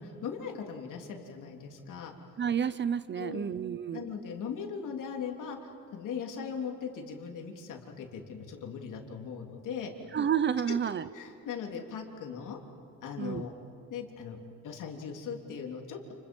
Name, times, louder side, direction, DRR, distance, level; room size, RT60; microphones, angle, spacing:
voice 1, 0.0-2.1 3.2-3.4 3.9-9.9 11.1-12.6 13.0-13.5 13.9-14.4 14.6-16.1, left 6 dB, 65° left, 2 dB, 3.5 m, -39 dB
voice 2, 2.4-4.0 10.1-11.1 13.2-13.4, right 8 dB, 35° right, 15 dB, 0.6 m, -30 dB
30.0 x 30.0 x 5.5 m, 2.7 s
cardioid pair, 140°, 33 cm